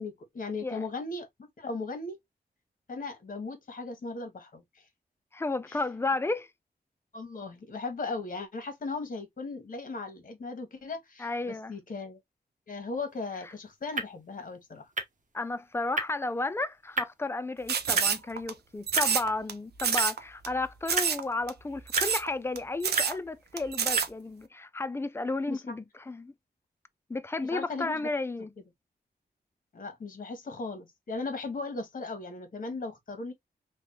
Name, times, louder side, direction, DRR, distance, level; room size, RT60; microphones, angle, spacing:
voice 1, 0.0-2.2 2.9-4.9 5.7-5.8 7.1-12.2 12.7-14.9 25.5-25.7 27.5-28.0 29.7-33.3, left 3 dB, 55° left, 1.1 m, -37 dB
voice 2, 5.3-6.5 11.2-11.7 15.3-26.3 27.1-28.5 32.7-32.8, left 2 dB, 15° left, 0.4 m, -33 dB
sound 1, 13.1-24.4, right 3 dB, 50° right, 1.0 m, -38 dB
sound 2, 17.7-18.5 18.9-19.5 19.8-20.2 20.4-20.5 20.9-21.2 21.5-21.6 21.9-22.3 22.6-22.7 22.8-23.2 23.6-24.1, right 7 dB, 80° right, 0.5 m, -27 dB
3.3 x 2.2 x 2.7 m
wide cardioid pair, 75°, 17 cm